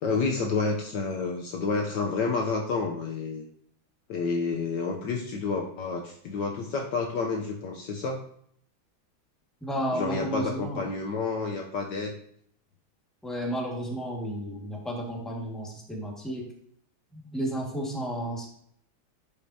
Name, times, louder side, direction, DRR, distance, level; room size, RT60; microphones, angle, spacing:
voice 1, 0.0-3.5 4.1-8.2 9.9-12.1, left 4 dB, 65° left, 2 dB, 1.2 m, -29 dB
voice 2, 9.6-10.8 13.2-16.4 17.1-18.5, right 1 dB, ahead, -2 dB, 1.4 m, -32 dB
11.0 x 5.2 x 2.8 m, 0.65 s
omnidirectional pair, 2.3 m